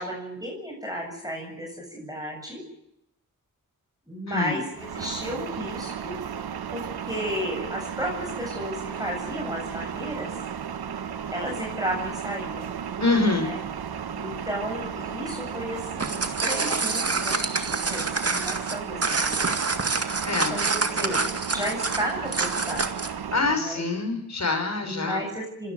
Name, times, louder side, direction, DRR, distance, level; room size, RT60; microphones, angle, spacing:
voice 1, 0.0-2.6 4.1-4.6 4.9-6.2 6.7-10.3 11.3-12.7 13.4-13.6 14.2-19.4 20.3-21.3 21.5-22.9 23.6-23.8 24.8-25.7, equal, 10° right, -1 dB, 7.7 m, -33 dB
voice 2, 4.3-4.6 13.0-13.5 20.2-20.6 23.3-25.2, left 3 dB, 45° left, 5 dB, 5.3 m, -25 dB
Bus noise, 4.7-23.6, right 8 dB, 85° right, 1.1 m, -34 dB
sound 1, 15.8-23.2, right 3 dB, 40° right, 2.1 m, -27 dB
27.0 x 13.0 x 9.5 m, 0.83 s
cardioid pair, 50°, 37 cm